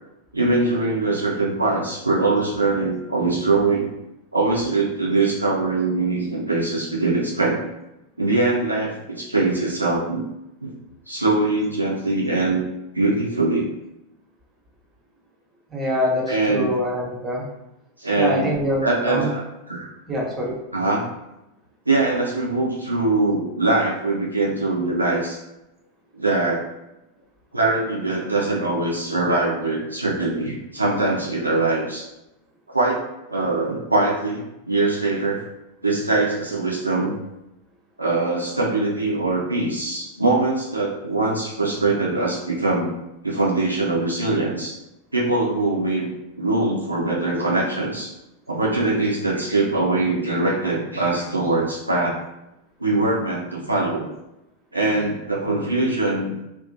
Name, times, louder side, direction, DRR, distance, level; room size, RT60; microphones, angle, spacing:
voice 1, 0.3-3.9 4.3-7.6 8.2-10.2 10.6-10.7 11.1-12.6 12.9-13.7 16.3-16.7 18.0-18.5 18.8-19.9 20.7-21.1 21.9-25.4 26.1-26.7 27.5-32.1 32.7-33.0 33.3-35.4 35.8-37.1 38.0-42.9 43.2-44.8 45.1-46.1 46.4-48.1 48.5-52.2 52.8-54.1 54.7-56.3, right 2 dB, 85° right, -4 dB, 0.5 m, -22 dB
voice 2, 15.7-17.4 18.1-19.3 20.1-20.6, equal, 20° right, -3 dB, 0.7 m, -24 dB
2.6 x 2.0 x 2.6 m, 0.90 s
figure-of-eight pair, 90°, 0 cm